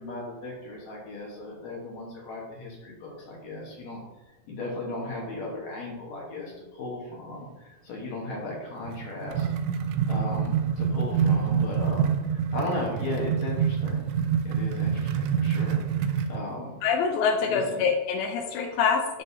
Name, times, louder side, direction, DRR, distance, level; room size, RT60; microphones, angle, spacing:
voice 1, 0.0-4.0 4.5-9.5 10.1-14.1 14.4-16.7 17.4-17.8, left 2 dB, 65° left, -3 dB, 1.7 m, -36 dB
sound 1, 8.9-16.4, right 7 dB, 85° right, 2.9 m, -26 dB
voice 2, 16.8-19.2, left 6 dB, 85° left, 2 dB, 3.0 m, -25 dB
13.0 x 5.5 x 2.8 m, 1.1 s
omnidirectional pair, 5.1 m